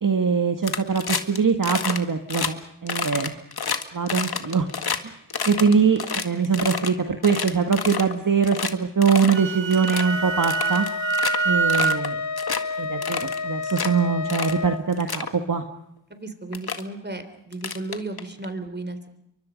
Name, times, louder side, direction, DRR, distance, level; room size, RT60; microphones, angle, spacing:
voice 1, 0.0-3.4 3.9-4.7 5.0-5.1 5.5-10.9 11.5-12.2 12.8-15.6, right 5 dB, 45° right, 6 dB, 1.8 m, -22 dB
sound 1, 0.6-1.4 1.6-2.0 2.3-2.5 2.9-5.0 5.3-6.9 7.2-8.1 8.4-8.7 9.0-9.4 9.7-10.0 10.4-11.4 11.7-12.1 12.4-12.6 13.0-13.9 14.3-14.6 14.9-15.3 16.1-16.2 16.5-16.8 17.5-18.4, left 6 dB, 55° left, 2.0 m, -29 dB
Wind instrument woodwind instrument, 9.1-12.0, right 5 dB, 75° right, 1.4 m, -25 dB
Wind instrument woodwind instrument 2, 10.0-14.8, left 5 dB, 40° left, 1.3 m, -30 dB
voice 2, 16.1-19.1, right 2 dB, 25° right, 9 dB, 3.7 m, -34 dB
29.0 x 24.0 x 5.3 m, 0.76 s
wide cardioid pair, 75°, 45 cm